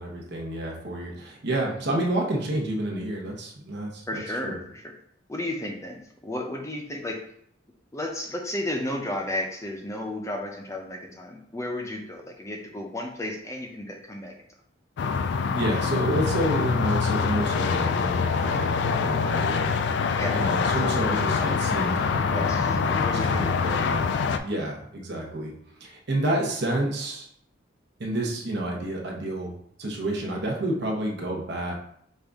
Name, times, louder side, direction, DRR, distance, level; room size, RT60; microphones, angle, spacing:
voice 1, 0.0-4.6 15.5-19.8 20.3-24.0 24.4-25.5 25.8-27.3 28.0-31.7, right 1 dB, 60° right, -1 dB, 1.0 m, -29 dB
voice 2, 4.1-4.8 5.3-7.2 7.9-14.3 20.2-20.7 21.0-21.2 22.3-23.8 30.3-30.4, left 1 dB, 15° left, 2 dB, 0.6 m, -33 dB
sound 1, 15.0-24.4, left 5 dB, 60° left, 0.3 m, -25 dB
5.3 x 2.5 x 3.5 m, 0.67 s
head